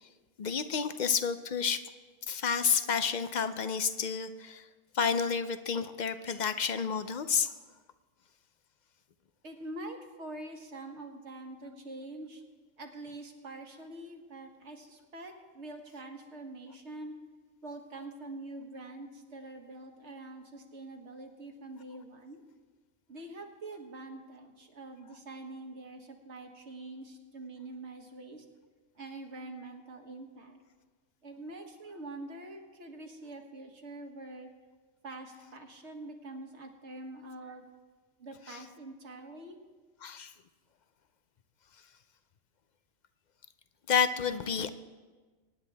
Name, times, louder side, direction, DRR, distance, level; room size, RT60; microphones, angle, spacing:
voice 1, 0.4-1.8 2.3-4.7 4.9-7.5 38.5-38.6 40.0-40.3 43.9-44.7, left 6 dB, 55° left, 11 dB, 0.5 m, -30 dB
voice 2, 9.4-12.4 12.8-17.1 17.6-22.4 23.1-28.4 29.0-30.6 31.2-34.5 35.0-37.7 38.2-39.6, right 2 dB, 60° right, 4 dB, 1.7 m, -45 dB
23.5 x 10.0 x 3.4 m, 1.3 s
omnidirectional pair, 1.3 m